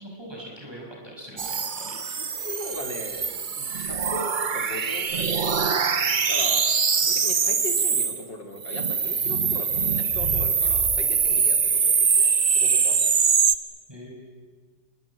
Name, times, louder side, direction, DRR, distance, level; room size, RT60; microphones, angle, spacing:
voice 1, 0.0-1.9 13.9-14.1, equal, 15° right, -3 dB, 6.0 m, -41 dB
sound 1, 1.4-8.2 8.6-13.5, right 6 dB, 35° right, 0.8 m, -23 dB
voice 2, 2.4-3.3 3.6-6.7 7.0-13.0, left 2 dB, 90° left, 4 dB, 3.8 m, -38 dB
27.0 x 24.0 x 8.5 m, 1.5 s
omnidirectional pair, 1.9 m